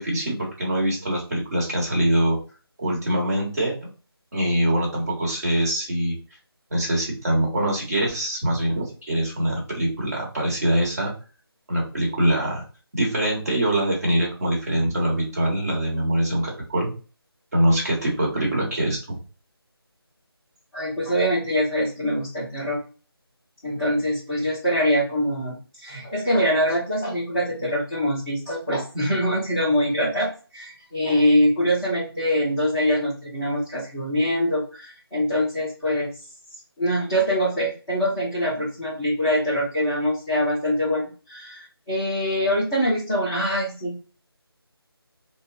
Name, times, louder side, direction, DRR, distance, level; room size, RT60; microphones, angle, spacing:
voice 1, 0.0-2.4 2.8-3.7 4.3-6.2 6.7-11.1 11.7-12.6 12.9-16.9 17.5-19.0, right 1 dB, 40° right, -3 dB, 1.4 m, -23 dB
voice 2, 20.7-22.8 23.6-36.1 36.8-43.9, equal, ahead, -22 dB, 0.4 m, -24 dB
3.8 x 2.2 x 2.6 m, 0.35 s
figure-of-eight pair, 160°, 13 cm